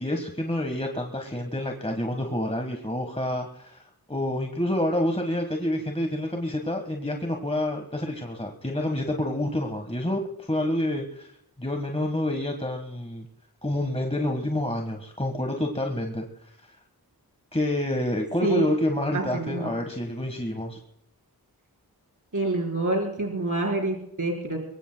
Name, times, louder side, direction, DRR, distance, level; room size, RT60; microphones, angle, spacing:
voice 1, 0.0-3.8 4.1-11.3 11.6-13.3 13.6-16.3 17.5-20.8, left 1 dB, 15° left, 3 dB, 1.5 m, -28 dB
voice 2, 19.1-19.7 22.3-24.6, right 2 dB, 50° right, 0 dB, 4.8 m, -27 dB
24.0 x 23.0 x 2.3 m, 0.75 s
wide cardioid pair, 65°, 39 cm